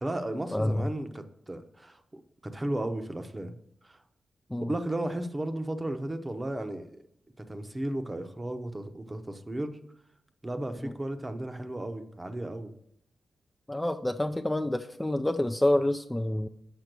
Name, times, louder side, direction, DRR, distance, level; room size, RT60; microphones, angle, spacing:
voice 1, 0.0-3.5 3.8-4.0 4.6-7.0 7.4-9.8 10.4-12.7, right 1 dB, 25° right, 8 dB, 0.8 m, -34 dB
voice 2, 0.5-0.9 4.5-4.7 10.8-10.9 13.7-16.5, left 1 dB, 10° left, 7 dB, 0.4 m, -28 dB
6.1 x 5.7 x 6.6 m, 0.76 s
cardioid pair, 65°, 0 cm